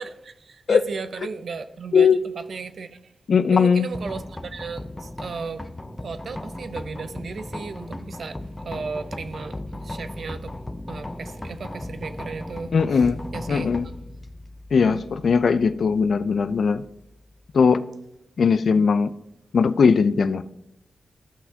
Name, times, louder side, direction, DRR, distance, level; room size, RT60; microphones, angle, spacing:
voice 1, 0.0-3.1 3.4-5.7 6.0-10.6 10.9-13.7 14.8-15.0 18.8-18.9, right 5 dB, 65° right, 0.6 m, -35 dB
voice 2, 3.3-3.9 12.7-13.2 13.5-13.9 14.7-16.8 17.5-17.8 18.4-19.1 19.5-20.4, left 5 dB, 70° left, 0.4 m, -19 dB
sound 1, 3.9-17.8, left 1 dB, 15° left, 0.6 m, -37 dB
14.5 x 5.8 x 2.8 m
cardioid pair, 80°, 0 cm